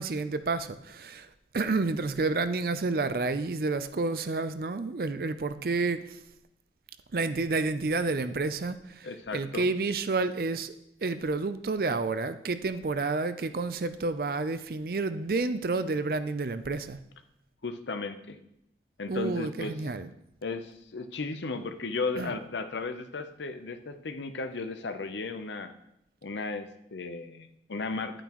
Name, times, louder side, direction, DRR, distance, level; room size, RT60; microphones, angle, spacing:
voice 1, 0.0-6.2 7.1-10.7 11.0-17.0 19.1-20.1 22.2-22.4, right 3 dB, 55° right, 12 dB, 0.5 m, -30 dB
voice 2, 9.0-9.6 17.6-18.4 19.0-19.7 20.4-25.7 26.2-28.2, left 3 dB, 90° left, 9 dB, 0.8 m, -35 dB
10.5 x 8.9 x 3.0 m, 0.78 s
head